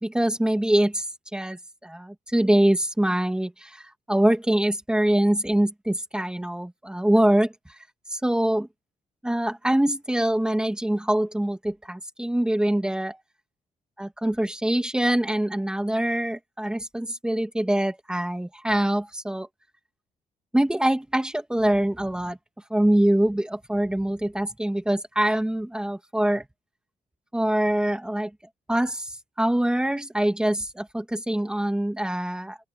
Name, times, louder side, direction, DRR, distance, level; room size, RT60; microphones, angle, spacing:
voice 1, 0.0-1.1 1.3-3.8 4.1-7.5 8.1-8.7 9.2-13.2 14.0-19.5 20.5-22.4 22.7-26.4 27.3-28.3 28.7-29.1 29.4-32.6, right 1 dB, 5° right, 2.0 m, -24 dB
wide cardioid pair, 165°, 14 cm